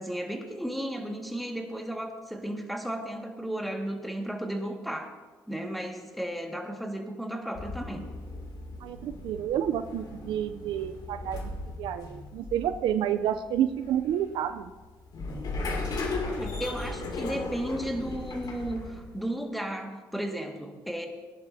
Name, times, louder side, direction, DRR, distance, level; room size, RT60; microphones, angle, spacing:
voice 1, 0.0-5.1 5.5-8.0 16.4-21.1, right 1 dB, ahead, 3 dB, 1.9 m, -34 dB
sound 1, 7.5-19.2, left 2 dB, 55° left, 2.6 m, -37 dB
voice 2, 8.8-11.5 11.8-14.7, right 10 dB, 70° right, 10 dB, 0.5 m, -29 dB
18.5 x 10.5 x 2.8 m, 1.3 s
supercardioid pair, 70°, 8 cm